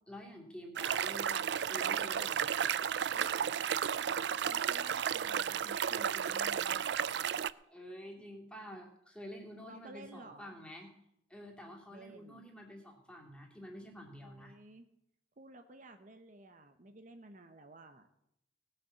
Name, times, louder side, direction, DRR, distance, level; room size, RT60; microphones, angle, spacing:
voice 1, 0.1-2.6 7.7-10.9 11.3-14.6, equal, 5° left, 0 dB, 2.6 m, -49 dB
sound 1, 0.8-7.5, right 8 dB, 70° right, 0.4 m, -33 dB
voice 2, 3.1-3.4 4.4-7.5 9.5-10.6 11.9-12.4 14.2-14.9 15.4-18.1, right 2 dB, 45° right, 7 dB, 0.9 m, -53 dB
18.5 x 6.9 x 6.9 m, 0.78 s
head